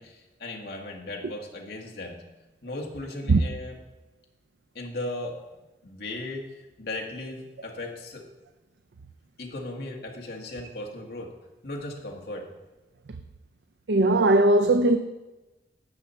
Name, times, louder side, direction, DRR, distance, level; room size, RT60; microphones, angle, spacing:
voice 1, 0.0-2.2 2.6-3.8 4.8-5.4 5.8-8.3 9.4-11.3 11.6-12.5, left 2 dB, 55° left, 1.7 m, -37 dB
voice 2, 13.9-15.0, right 2 dB, 70° right, 0.5 m, -19 dB
12.5 x 8.5 x 4.3 m
head